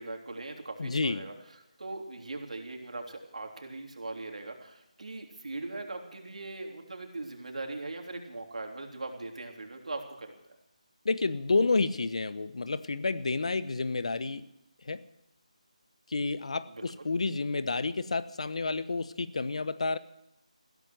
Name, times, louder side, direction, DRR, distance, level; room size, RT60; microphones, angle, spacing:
voice 1, 0.0-1.3 1.8-10.3 16.7-17.1, right 2 dB, 70° right, 3 dB, 3.4 m, -40 dB
voice 2, 0.8-1.3 11.0-14.4 14.8-15.0 16.1-20.0, left 3 dB, 55° left, 15 dB, 1.0 m, -30 dB
15.5 x 13.5 x 6.3 m, 0.86 s
figure-of-eight pair, 170°, 4 cm